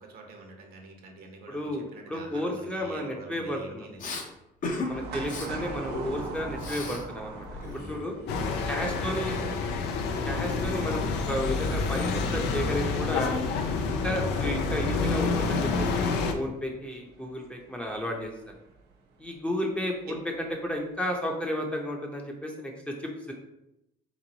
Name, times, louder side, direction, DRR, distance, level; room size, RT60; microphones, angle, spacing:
voice 1, 0.0-4.2 4.9-5.3 8.3-10.0 20.1-20.2, right 3 dB, 60° right, 2 dB, 0.9 m, -46 dB
voice 2, 1.5-3.9 4.7-7.4 7.7-8.1 8.7-9.4 10.2-13.3 14.0-18.3 19.2-20.2 20.6-22.9 23.3-23.4, equal, 5° left, 0 dB, 0.6 m, -33 dB
Respiratory sounds, 4.0-4.2 4.6-4.9 5.2-5.5 5.9-7.0 7.3-8.7, left 3 dB, 50° left, 0.8 m, -36 dB
sound 1, 4.9-18.9 19.2-19.3 20.3-20.7 21.0-21.1, right 3 dB, 85° right, 0.7 m, -43 dB
sound 2, 8.3-16.3, left 4 dB, 85° left, 0.5 m, -28 dB
3.8 x 3.1 x 3.9 m, 0.85 s
cardioid pair, 110°, 17 cm